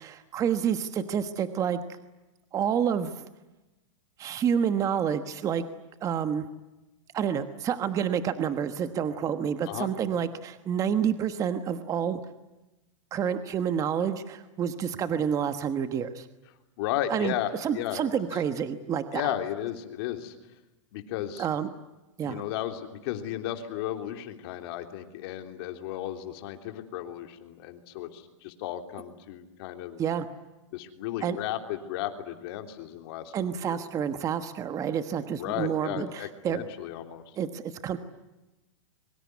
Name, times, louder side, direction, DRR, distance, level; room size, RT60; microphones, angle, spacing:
voice 1, 0.0-1.8 2.5-3.3 4.2-5.7 6.0-6.4 7.1-12.2 13.1-16.3 17.1-19.3 21.4-21.7 22.2-22.4 30.0-30.3 31.2-31.4 33.3-36.6 37.4-38.0, right 8 dB, 20° right, 10 dB, 1.3 m, -29 dB
voice 2, 16.8-18.4 19.1-20.4 20.9-21.5 22.2-30.0 30.7-33.8 35.4-37.4, left 12 dB, 50° left, 6 dB, 3.5 m, -34 dB
24.5 x 24.0 x 9.6 m, 1.0 s
supercardioid pair, 155°, 16 cm